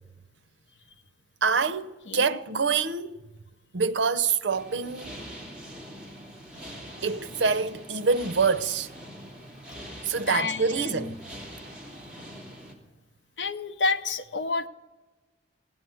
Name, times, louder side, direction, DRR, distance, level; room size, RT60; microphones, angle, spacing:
voice 1, 1.4-3.2 3.7-5.2 7.0-8.9 10.0-11.2, right 5 dB, 80° right, 0.6 m, -26 dB
voice 2, 2.1-2.4 9.4-9.8 10.3-11.1 13.4-14.7, left 3 dB, 75° left, 0.8 m, -30 dB
sound 1, 4.5-12.7, equal, 5° right, 2.8 m, -43 dB
16.5 x 9.6 x 7.8 m
head